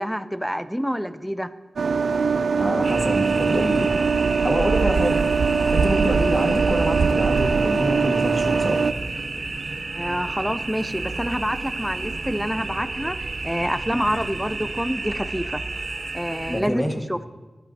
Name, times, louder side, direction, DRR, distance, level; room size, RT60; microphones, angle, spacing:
voice 1, 0.0-1.5 9.9-15.6 16.1-17.2, equal, ahead, 12 dB, 0.5 m, -27 dB
sound 1, 1.8-8.9, right 5 dB, 85° right, 0.3 m, -21 dB
voice 2, 2.6-3.9 4.4-5.2 5.7-8.8 16.5-16.9, equal, 20° left, 2 dB, 1.7 m, -26 dB
sound 2, 2.8-16.6, right 3 dB, 65° right, 1.2 m, -31 dB
15.0 x 12.0 x 2.8 m, 1.2 s
wide cardioid pair, 75°, 0 cm